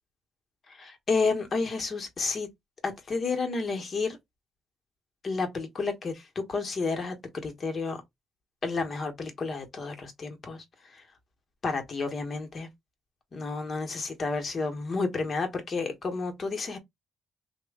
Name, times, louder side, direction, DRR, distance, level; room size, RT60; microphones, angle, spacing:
voice 1, 0.7-2.5 2.8-4.2 5.2-7.2 7.4-8.0 8.6-10.6 10.9-11.0 11.6-12.7 13.3-16.8, left 4 dB, 40° left, 1.1 m, -31 dB
3.0 x 2.2 x 3.5 m
cardioid pair, 90°, 0 cm